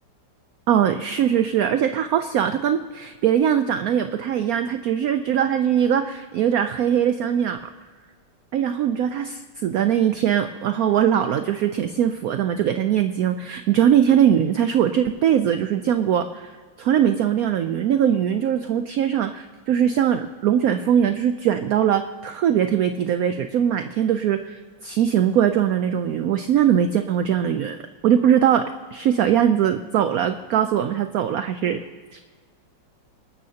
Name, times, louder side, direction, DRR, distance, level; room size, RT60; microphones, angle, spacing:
voice 1, 0.7-7.7 8.5-16.5 16.8-27.8 28.0-31.8 32.1-32.2, right 9 dB, 70° right, 9 dB, 0.9 m, -21 dB
26.5 x 12.5 x 2.8 m, 1.5 s
omnidirectional pair, 2.0 m